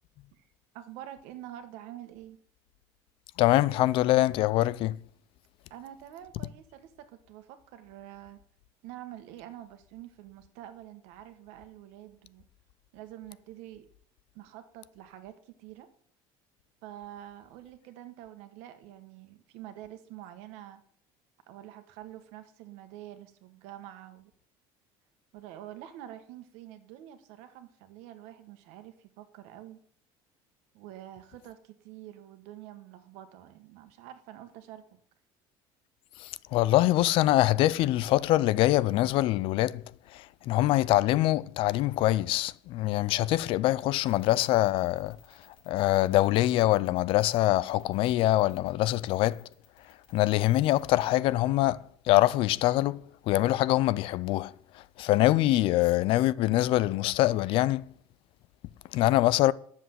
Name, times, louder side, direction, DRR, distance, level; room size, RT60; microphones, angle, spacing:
voice 1, 0.7-2.4 5.7-8.4 8.8-12.4 12.9-13.9 14.3-15.9 16.8-20.8 21.5-24.3 25.3-29.8 30.7-34.9, right 12 dB, 80° right, 1.5 m, -47 dB
voice 2, 3.4-5.0 36.2-39.8 40.5-45.2 45.7-49.4 50.1-51.8 52.1-53.0 53.3-54.5 55.0-57.8 58.9-59.5, left 16 dB, 55° left, 0.4 m, -24 dB
sound 1, 44.1-51.2, left 9 dB, 75° left, 3.5 m, -59 dB
10.0 x 7.2 x 7.6 m
cardioid pair, 165°, 11 cm